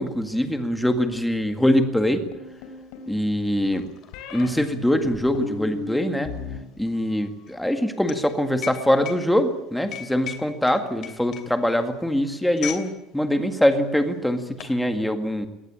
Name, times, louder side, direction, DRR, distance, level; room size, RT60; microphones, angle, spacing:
voice 1, 0.0-2.3 3.1-3.9 4.3-6.3 6.8-15.5, left 1 dB, 5° left, 7 dB, 1.9 m, -23 dB
sound 1, 2.3-3.1 4.1-4.5 5.0-6.6 6.9-7.4, left 3 dB, 75° left, 5.2 m, -35 dB
sound 2, 2.6-2.7 3.0-12.9 13.2-13.5 14.2-14.8, left 10 dB, 45° left, 3.1 m, -39 dB
22.0 x 18.5 x 8.7 m, 0.94 s
cardioid pair, 160°, 0 cm